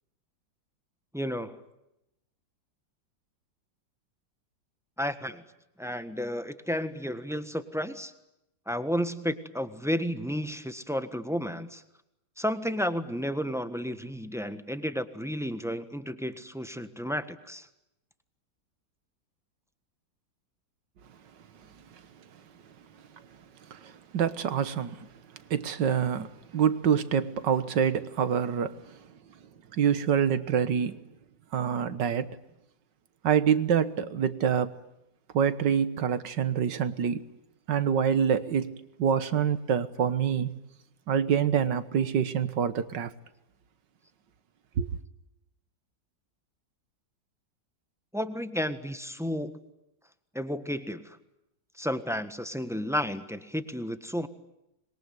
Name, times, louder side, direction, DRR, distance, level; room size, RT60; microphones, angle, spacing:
voice 1, 1.1-1.6 5.0-5.4 5.8-8.1 8.7-11.8 12.4-17.7 48.1-49.5 50.3-51.2 51.8-54.3, equal, ahead, 1.2 m, -32 dB
voice 2, 23.7-25.1 25.5-29.0 29.7-31.0 31.5-32.4 33.2-34.8 35.3-37.3 37.7-40.5 41.1-43.1 44.8-44.9, right 7 dB, 75° right, 1.9 m, -26 dB
26.5 x 22.0 x 9.4 m
omnidirectional pair, 2.0 m